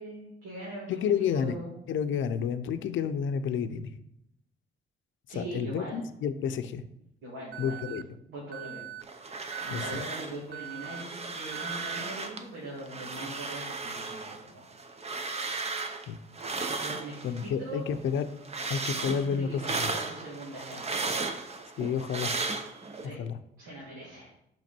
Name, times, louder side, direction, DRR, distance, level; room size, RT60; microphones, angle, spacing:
voice 1, 0.0-1.7 5.3-6.0 7.2-7.9 8.3-9.4 9.6-14.6 16.8-17.8 18.9-21.3 23.0-23.2 23.6-24.3, right 1 dB, 85° right, -7 dB, 2.7 m, -42 dB
voice 2, 0.9-1.6 1.9-3.9 5.4-6.8 7.6-8.0 9.7-10.0 16.1-16.2 17.2-18.2 18.7-19.9 21.8-22.3 23.2-23.4, left 7 dB, 75° left, 10 dB, 0.7 m, -30 dB
Alarm, 7.5-8.0 8.5-9.0 9.5-10.0 10.5-11.0 11.5-12.0, right 13 dB, 55° right, 0.4 m, -41 dB
sound 1, 9.0-10.4 10.7-12.4 12.8-17.5 17.9-23.1, right 3 dB, 30° right, 0.8 m, -35 dB
6.1 x 5.7 x 4.4 m, 0.79 s
cardioid pair, 90°, 20 cm